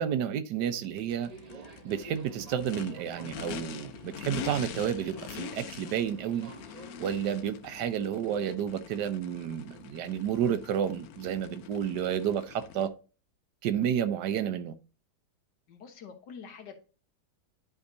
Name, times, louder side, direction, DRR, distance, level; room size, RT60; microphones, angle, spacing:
voice 1, 0.0-1.3 1.8-6.5 7.0-12.9 13.6-14.8, right 9 dB, 80° right, 1.3 m, -31 dB
Race car auto racing / Idling / Accelerating revving vroom, 0.8-12.9, left 9 dB, 70° left, 1.0 m, -44 dB
Subway metro underground, 1.2-7.1, right 3 dB, 30° right, 0.8 m, -50 dB
voice 2, 15.7-16.8, left 6 dB, 90° left, 1.8 m, -46 dB
10.5 x 4.9 x 2.6 m
omnidirectional pair, 1.8 m